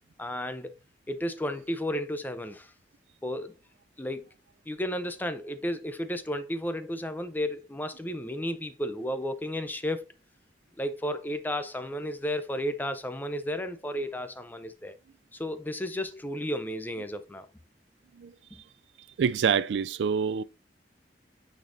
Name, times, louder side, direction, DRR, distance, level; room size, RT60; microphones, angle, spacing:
voice 1, 0.2-0.7 1.1-2.7 3.2-3.6 4.0-4.3 4.7-10.1 10.8-15.0 15.3-17.5 18.5-18.6, equal, 10° left, 0.5 m, -33 dB
voice 2, 19.2-20.4, right 6 dB, 90° right, 0.4 m, -26 dB
9.0 x 4.1 x 2.6 m
head